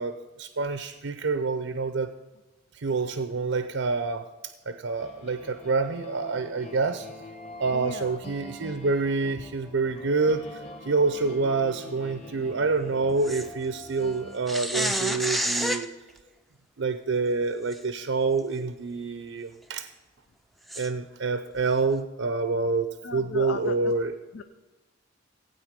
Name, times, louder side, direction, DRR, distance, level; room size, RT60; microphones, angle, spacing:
voice 1, 0.0-2.1 2.7-7.1 7.6-15.9 16.8-19.9 20.8-24.1, right 4 dB, 75° right, 10 dB, 0.6 m, -27 dB
sound 1, 5.0-14.4, left 1 dB, 30° left, 1.6 m, -44 dB
voice 2, 7.7-8.2 11.2-11.4 23.0-24.0 24.3-24.4, left 4 dB, 75° left, 8 dB, 0.5 m, -36 dB
sound 2, 13.2-13.5 14.5-15.9 17.7-17.8 18.4-18.5 20.7-20.9, right 1 dB, ahead, 0.4 m, -28 dB
16.0 x 8.8 x 5.1 m, 1.2 s
head